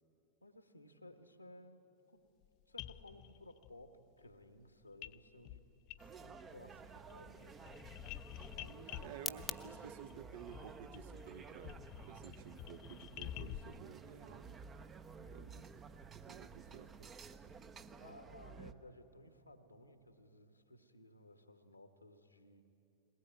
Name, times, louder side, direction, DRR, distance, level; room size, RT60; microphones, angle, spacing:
voice 1, 0.4-2.3 2.7-5.6 6.0-8.2 8.5-9.9 15.1-15.5 18.0-22.6, left 1 dB, 85° left, 9 dB, 1.2 m, -58 dB
sound 1, 2.4-2.5 2.8-3.7 5.0-5.2 5.4-6.5 6.8-13.8, left 14 dB, 45° left, 0.4 m, -50 dB
sound 2, 6.0-18.7, right 5 dB, 20° right, 0.7 m, -53 dB
sound 3, 6.5-18.1, left 5 dB, 15° left, 0.7 m, -54 dB
voice 2, 9.0-14.6 15.3-15.7 16.3-17.4, right 9 dB, 50° right, 12 dB, 0.8 m, -53 dB
21.0 x 19.5 x 9.3 m, 2.9 s
figure-of-eight pair, 90°, 0 cm